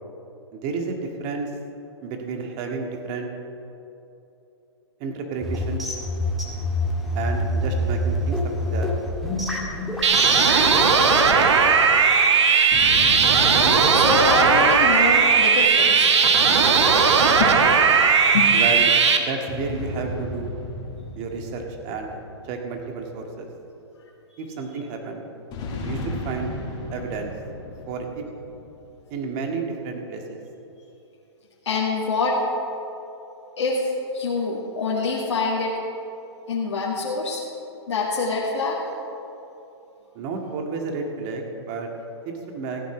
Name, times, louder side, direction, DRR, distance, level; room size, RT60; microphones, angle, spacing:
voice 1, 0.5-1.5 2.0-3.3 5.0-5.9 7.1-8.9 10.2-10.7 18.5-18.9 19.2-20.5 21.2-22.1 22.4-23.5 24.4-25.3 25.8-26.6 26.9-27.3 27.9-28.2 29.1-30.4 40.1-41.9 42.3-42.8, right 4 dB, 40° right, 3 dB, 1.9 m, -31 dB
sound 1, 5.4-10.8, left 1 dB, ahead, 1.9 m, -26 dB
sound 2, 10.0-19.2, right 5 dB, 75° right, 1.3 m, -17 dB
sound 3, 12.7-16.3 19.5-23.1 25.5-28.9, left 1 dB, 30° left, 2.6 m, -34 dB
voice 2, 13.9-16.1 17.4-17.5 18.3-18.5 24.3-24.4 31.6-32.4 33.6-35.7 36.5-37.4 37.9-38.8, left 4 dB, 75° left, -5 dB, 2.1 m, -25 dB
15.0 x 8.7 x 6.1 m, 2.9 s
hypercardioid pair, 130°, 15 cm